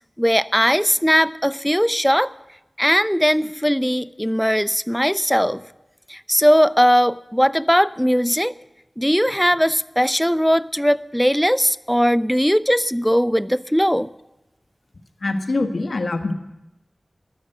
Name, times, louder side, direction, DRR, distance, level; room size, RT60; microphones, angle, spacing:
voice 1, 0.2-2.3 2.8-5.6 6.1-8.5 9.0-14.1, equal, ahead, 16 dB, 0.6 m, -19 dB
voice 2, 15.2-16.3, left 2 dB, 80° left, 7 dB, 1.5 m, -23 dB
15.5 x 11.0 x 7.9 m, 0.94 s
cardioid pair, 40°, 0 cm